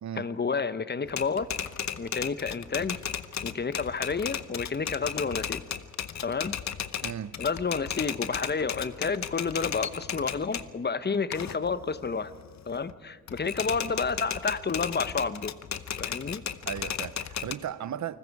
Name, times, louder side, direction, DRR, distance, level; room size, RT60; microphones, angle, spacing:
voice 1, 0.2-1.5 2.0-3.0 3.4-5.6 6.2-6.6 7.4-12.3 12.7-15.6 16.0-16.4, left 5 dB, 30° left, 1.0 m, -30 dB
Typewriter, 1.1-10.7 11.1-12.9 13.3-17.5, left 9 dB, 60° left, 0.9 m, -35 dB
voice 2, 7.0-7.4 16.7-18.2, right 9 dB, 60° right, 0.9 m, -36 dB
29.0 x 20.0 x 4.8 m
cardioid pair, 70°, 32 cm